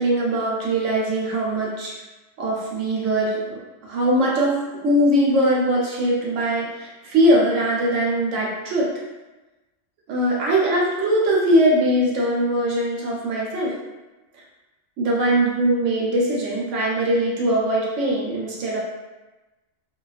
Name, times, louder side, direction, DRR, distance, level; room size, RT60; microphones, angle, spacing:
voice 1, 0.0-1.9 2.4-4.5 4.8-8.9 10.1-13.7 15.0-18.8, right 1 dB, 90° right, -4 dB, 1.0 m, -21 dB
2.4 x 2.2 x 2.3 m, 1.1 s
omnidirectional pair, 1.2 m